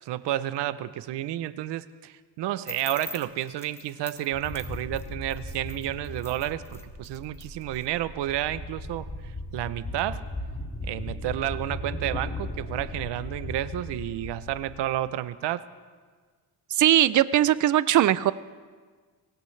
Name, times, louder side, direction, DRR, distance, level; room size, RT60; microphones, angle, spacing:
voice 1, 0.0-10.2 10.8-15.6, right 13 dB, 90° right, 15 dB, 0.7 m, -31 dB
sound 1, 2.7-7.9, left 1 dB, 5° left, 0.9 m, -44 dB
sound 2, 4.3-14.7, left 2 dB, 25° left, 2.4 m, -37 dB
voice 2, 16.8-18.3, right 12 dB, 50° right, 17 dB, 0.5 m, -20 dB
23.0 x 19.0 x 3.3 m, 1.5 s
cardioid pair, 140°, 40 cm